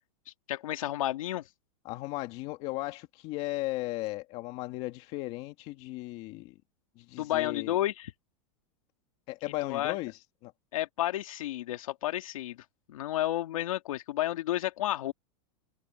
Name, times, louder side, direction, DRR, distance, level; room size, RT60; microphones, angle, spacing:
voice 1, 0.5-1.5 7.2-8.1 9.6-10.0 10.7-12.6 12.9-15.1, left 14 dB, 85° left, 2.2 m, -31 dB
voice 2, 1.9-6.5 7.0-7.8 9.3-10.1 10.4-10.5, left 19 dB, 35° left, 2.1 m, -36 dB
supercardioid pair, 170°, 17 cm